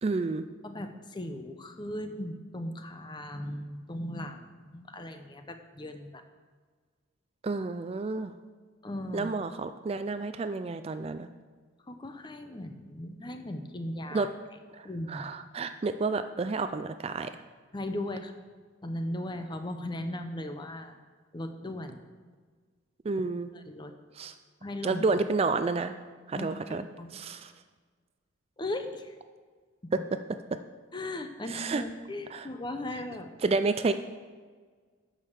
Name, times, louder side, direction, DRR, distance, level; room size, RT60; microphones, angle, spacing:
voice 1, 0.0-0.5 7.4-8.3 9.1-11.3 14.1-14.3 15.1-17.3 23.1-23.5 24.2-24.3 24.8-25.9 26.3-26.8 27.1-27.5 29.9-30.0 31.5-31.8 32.3-32.5 33.4-33.9, right 3 dB, 30° right, 10 dB, 0.3 m, -30 dB
voice 2, 0.6-6.2 8.8-9.3 11.9-14.3 14.8-15.2 17.7-18.3 18.8-20.9 21.3-22.0 23.5-23.9 24.6-25.0 26.3-27.2 28.6-29.2 30.9-33.3, left 1 dB, 25° left, 7 dB, 0.7 m, -37 dB
9.0 x 6.5 x 6.6 m, 1.5 s
head